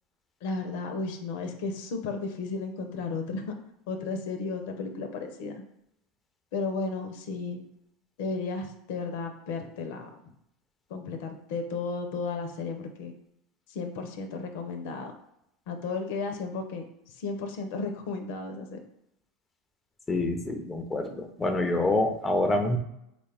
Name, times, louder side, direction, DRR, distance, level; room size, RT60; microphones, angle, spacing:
voice 1, 0.4-3.6 3.9-5.5 6.5-7.6 8.2-10.1 10.9-13.1 13.7-15.1 15.7-16.8 17.2-18.8, left 4 dB, 65° left, 5 dB, 0.5 m, -34 dB
voice 2, 20.1-22.8, left 2 dB, 15° left, 6 dB, 0.6 m, -26 dB
3.7 x 2.3 x 3.4 m, 0.78 s
hypercardioid pair, 85°, 0 cm